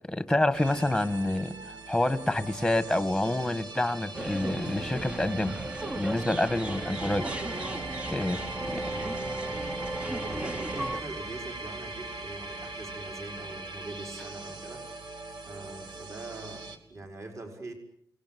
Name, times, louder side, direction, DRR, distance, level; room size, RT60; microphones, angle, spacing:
voice 1, 0.1-1.5 1.9-5.5 6.0-7.3 8.1-8.4 8.7-8.8, left 1 dB, 5° left, 13 dB, 1.5 m, -27 dB
sound 1, 0.5-16.8, right 3 dB, 65° right, 2.8 m, -41 dB
sound 2, 4.1-11.0, right 2 dB, 15° right, 1.0 m, -35 dB
voice 2, 8.8-14.8 15.4-17.7, right 2 dB, 40° right, 3 dB, 5.1 m, -43 dB
29.5 x 19.5 x 9.4 m, 0.70 s
wide cardioid pair, 175°, 8 cm